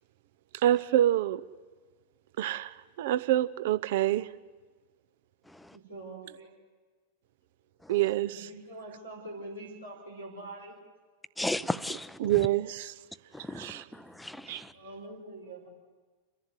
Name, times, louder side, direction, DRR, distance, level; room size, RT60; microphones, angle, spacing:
voice 1, 0.6-1.4 2.4-4.3 7.9-8.5 12.2-12.9 13.5-13.8 14.5-14.6, right 13 dB, 55° right, 0.7 m, -27 dB
voice 2, 5.7-6.5 8.3-10.7 14.7-15.7, right 2 dB, 80° right, 5.6 m, -44 dB
voice 3, 11.4-12.2 13.3-14.7, left 1 dB, 5° left, 0.6 m, -35 dB
30.0 x 11.0 x 9.7 m
figure-of-eight pair, 90°, 0 cm